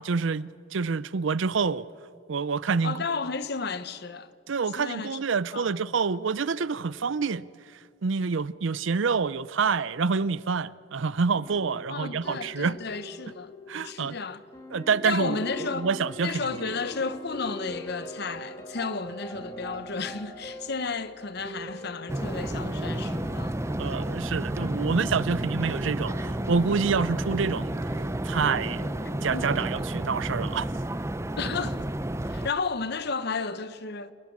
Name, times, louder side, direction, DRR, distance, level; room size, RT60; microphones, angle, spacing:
voice 1, 0.0-1.9 2.3-2.9 4.5-7.4 8.0-12.8 13.7-14.2 14.7-15.4 15.8-16.4 23.8-27.8 28.2-28.9 29.2-30.6, right 5 dB, 65° right, 0.5 m, -27 dB
voice 2, 2.8-4.3 4.8-5.2 5.5-5.7 11.9-13.5 13.8-14.4 15.0-15.9 16.2-23.6 29.3-29.7 31.4-31.8 32.2-34.1, left 4 dB, 50° left, 0.9 m, -33 dB
sound 1, 11.3-29.4, left 1 dB, 15° left, 2.2 m, -42 dB
sound 2, 22.1-32.5, right 1 dB, 15° right, 0.6 m, -31 dB
27.5 x 20.0 x 7.3 m
head